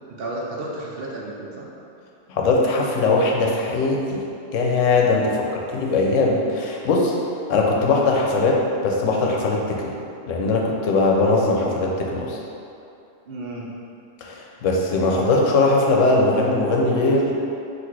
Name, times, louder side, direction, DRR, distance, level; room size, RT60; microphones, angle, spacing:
voice 1, 0.2-1.7 5.2-5.5 13.3-13.7, right 2 dB, 60° right, -3 dB, 0.7 m, -32 dB
voice 2, 2.3-4.2 4.5-7.1 7.5-9.9 10.3-12.4 14.2-17.4, left 3 dB, 85° left, -1 dB, 1.0 m, -20 dB
4.1 x 2.5 x 4.5 m, 2.7 s
omnidirectional pair, 1.3 m